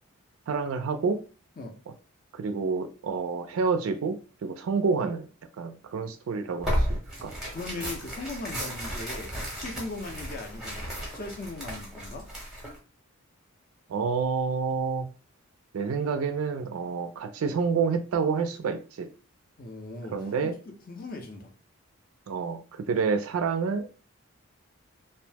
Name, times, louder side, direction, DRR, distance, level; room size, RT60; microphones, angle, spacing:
voice 1, 0.5-1.2 2.3-5.3 5.6-7.4 13.9-15.1 15.7-19.1 20.1-20.6 22.3-23.9, right 5 dB, 70° right, 0.3 m, -28 dB
Tearing, 6.6-12.8, equal, ahead, 0.7 m, -33 dB
voice 2, 7.5-12.3 19.6-21.5, left 2 dB, 40° left, 0.5 m, -39 dB
2.7 x 2.0 x 3.3 m
head